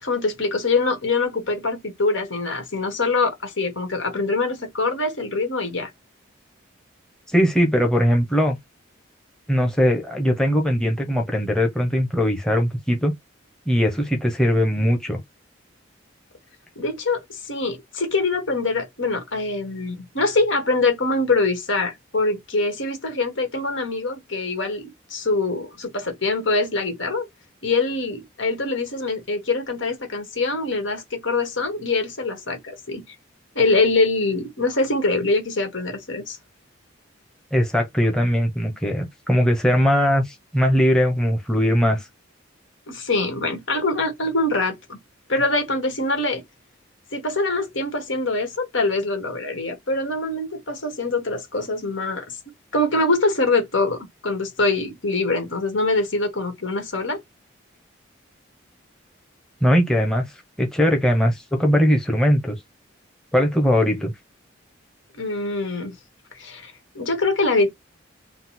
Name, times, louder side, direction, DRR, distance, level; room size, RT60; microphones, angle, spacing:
voice 1, 0.0-5.9 16.8-27.3 27.6-33.2 33.6-36.4 42.9-45.0 45.3-46.4 47.1-52.4 52.7-57.2 65.2-66.0 66.3-67.7, left 3 dB, 70° left, 1.7 m, -24 dB
voice 2, 7.3-8.6 9.5-13.1 13.7-15.2 37.5-42.1 59.6-60.3 60.6-62.6 63.3-64.1, equal, 5° left, 0.9 m, -20 dB
4.0 x 2.3 x 4.2 m
head